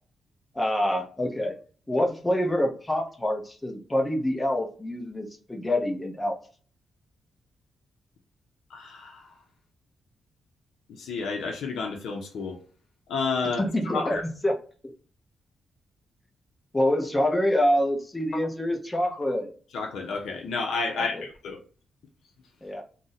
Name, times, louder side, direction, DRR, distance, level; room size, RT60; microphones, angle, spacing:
voice 1, 0.5-1.5 1.9-6.4 13.6-14.2 14.4-14.5 16.7-19.5 21.0-21.2 22.6-22.8, left 1 dB, 15° left, 0.6 m, -26 dB
voice 2, 8.7-9.3 10.9-12.6 13.1-13.6 13.9-14.2 19.7-21.6, left 4 dB, 90° left, 0.5 m, -30 dB
2.5 x 2.1 x 3.9 m
cardioid pair, 125°, 0 cm